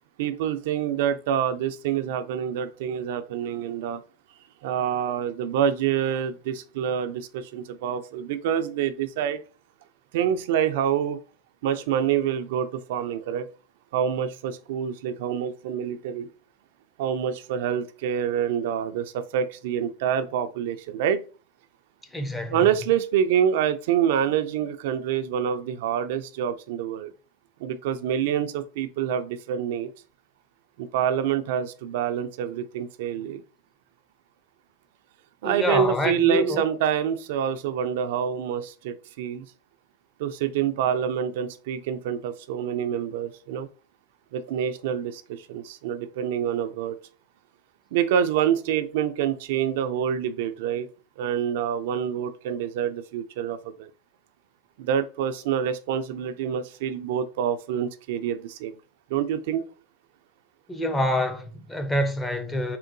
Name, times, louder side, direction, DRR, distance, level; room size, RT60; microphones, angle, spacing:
voice 1, 0.2-4.0 4.6-9.4 10.1-11.2 11.6-13.5 13.9-16.3 17.0-21.2 22.5-27.1 27.6-29.9 30.8-33.4 35.4-39.4 40.2-43.7 44.3-47.0 47.9-50.9 51.2-53.9 54.8-58.7 59.1-59.7, right 9 dB, 70° right, 0.3 m, -26 dB
voice 2, 22.1-22.6 35.4-36.6 60.7-62.8, left 1 dB, 10° left, 0.5 m, -26 dB
3.6 x 2.2 x 2.5 m
supercardioid pair, 120°, 0 cm